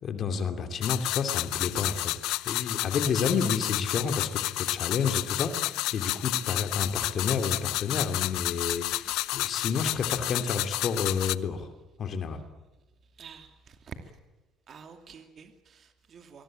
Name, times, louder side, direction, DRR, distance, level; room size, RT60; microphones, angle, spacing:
voice 1, 0.0-2.1 2.5-11.7 12.0-12.4, left 6 dB, 40° left, 8 dB, 2.8 m, -30 dB
sound 1, 0.8-11.4, left 18 dB, 80° left, 0.7 m, -31 dB
voice 2, 8.8-9.3 13.2-14.1 14.7-16.4, right 6 dB, 40° right, 7 dB, 2.5 m, -49 dB
24.5 x 21.5 x 8.9 m, 1.2 s
cardioid pair, 140°, 0 cm